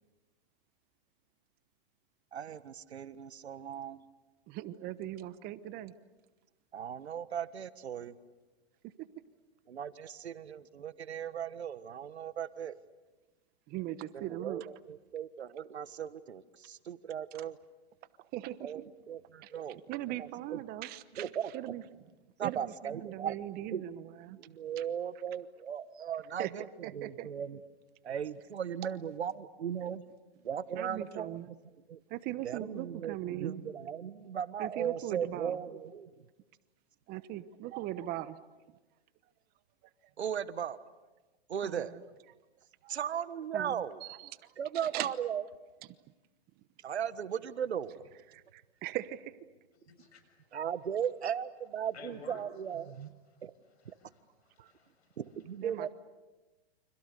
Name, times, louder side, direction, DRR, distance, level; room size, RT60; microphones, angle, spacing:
voice 1, 2.3-4.0 6.7-8.2 9.7-12.8 14.1-17.6 18.6-19.8 20.2-20.6 21.2-21.5 22.4-23.4 23.7-23.8 24.4-26.7 26.9-27.6 28.0-30.0 30.4-31.4 31.9-32.0 32.4-36.2 40.2-40.8 41.5-41.9 42.9-44.0 44.6-45.4 46.8-48.0 50.5-53.1 53.4-53.5 53.8-53.9 55.2-55.9, right 8 dB, 85° right, 14 dB, 1.5 m, -37 dB
voice 2, 4.5-5.9 8.8-8.9 13.7-14.7 18.3-18.7 19.4-19.5 19.9-21.8 22.4-24.4 24.8-24.9 26.4-26.5 26.8-27.3 30.7-31.5 32.1-33.6 34.6-35.6 37.1-38.4 41.6-42.0 42.8-42.9 43.5-44.5 44.8-45.1 48.3-49.4 54.6-54.7 55.6-55.9, right 14 dB, 30° right, 15 dB, 1.1 m, -40 dB
voice 3, 49.7-50.5 51.9-52.4 53.8-55.2, left 5 dB, 85° left, 8 dB, 6.9 m, -54 dB
29.5 x 26.0 x 6.8 m, 1.2 s
hypercardioid pair, 135°, 32 cm